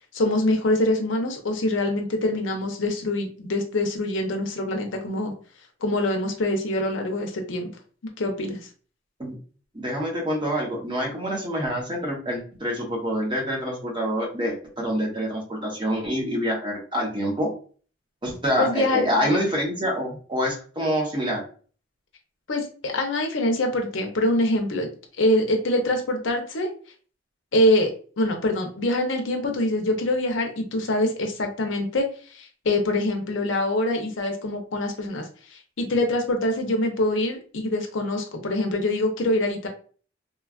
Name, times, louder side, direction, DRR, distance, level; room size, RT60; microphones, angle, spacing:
voice 1, 0.1-5.3 5.8-7.7 8.2-8.6 18.6-19.1 22.5-24.9 25.2-26.7 27.5-39.7, left 1 dB, 80° left, 3 dB, 0.6 m, -24 dB
voice 2, 9.7-17.5 18.2-21.4, equal, 25° right, -2 dB, 0.9 m, -26 dB
3.1 x 2.3 x 2.3 m, 0.41 s
head